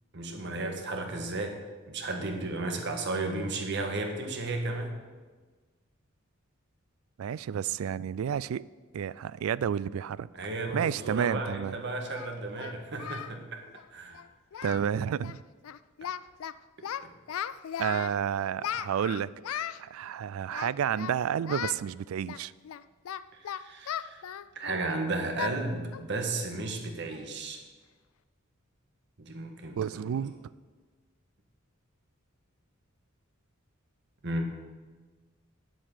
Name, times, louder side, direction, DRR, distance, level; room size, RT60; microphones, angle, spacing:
voice 1, 0.1-1.6 1.9-4.9 10.4-13.6 13.9-14.2 14.6-14.7 16.0-16.1 17.0-17.1 23.3-24.2 24.5-27.6 29.2-30.2 34.2-34.5, right 2 dB, 60° right, 4 dB, 1.5 m, -34 dB
voice 2, 7.2-8.6 8.9-10.3 10.7-11.8 14.6-15.4 17.8-19.3 19.8-22.5 29.8-30.3, right 8 dB, 85° right, 20 dB, 0.3 m, -30 dB
Singing, 11.3-11.4 12.1-13.4 13.6-13.8 14.1-14.3 14.5-14.9 15.2-15.4 15.6-16.5 16.8-18.2 18.6-19.8 20.5-21.2 21.5-21.8 22.3-24.9 25.4-25.6 25.9-26.1 26.5-26.6 27.1-27.4, left 9 dB, 85° left, 0.4 m, -37 dB
8.7 x 7.8 x 7.3 m, 1.4 s
head